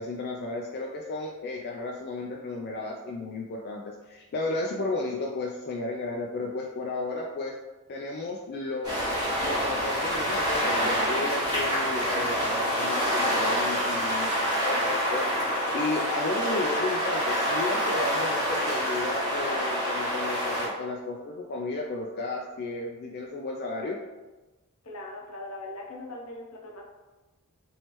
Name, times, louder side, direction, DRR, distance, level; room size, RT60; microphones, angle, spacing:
voice 1, 0.0-7.5 7.9-9.0 9.4-24.0, left 2 dB, 45° left, -1 dB, 0.3 m, -33 dB
sound 1, 8.8-20.7, equal, 20° right, 1.0 m, -27 dB
voice 2, 24.8-26.9, left 2 dB, 75° left, 0 dB, 0.7 m, -40 dB
3.1 x 3.1 x 2.9 m, 1.2 s
head